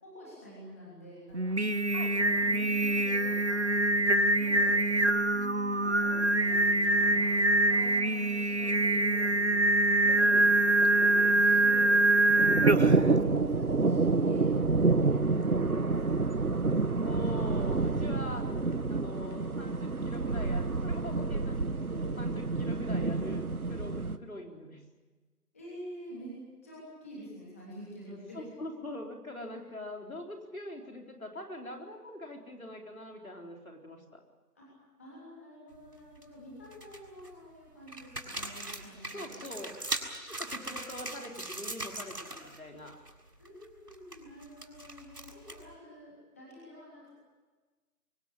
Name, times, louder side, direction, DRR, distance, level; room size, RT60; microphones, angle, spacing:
voice 1, 0.0-1.6 1.9-5.0 5.3-10.3 10.9-12.0 12.6-12.9 13.2-16.3 22.5-22.7 25.5-26.3 26.6-28.5 34.5-34.7 35.0-39.3 43.4-47.1, equal, 10° left, -7 dB, 3.2 m, -48 dB
Singing, 1.3-13.1, right 2 dB, 45° right, 0.8 m, -25 dB
voice 2, 4.9-5.5 10.1-10.5 13.8-13.9 17.0-18.5 18.9-24.8 28.3-34.2 39.1-39.8 40.2-43.0, left 1 dB, 60° left, 2 dB, 4.0 m, -43 dB
sound 1, 10.3-24.2, right 3 dB, 60° right, 1.3 m, -28 dB
sound 2, 35.7-36.2 36.7-37.3 37.9-42.6 42.8-43.1 43.4-45.7, right 2 dB, 80° right, 6.4 m, -40 dB
24.0 x 17.5 x 10.0 m, 1.3 s
figure-of-eight pair, 170°, 48 cm